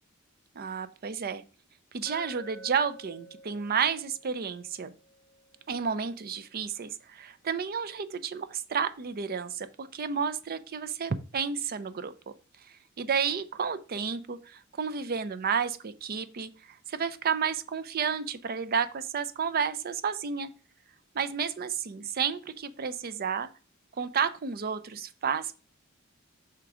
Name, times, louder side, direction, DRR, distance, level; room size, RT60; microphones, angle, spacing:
voice 1, 0.6-1.4 1.9-4.9 5.7-12.1 13.0-20.5 21.1-23.5 24.0-25.5, right 6 dB, 45° right, 13 dB, 0.5 m, -31 dB
Glass, 2.1-6.2, right 1 dB, 20° left, 0.5 m, -51 dB
5.8 x 3.7 x 4.9 m, 0.36 s
head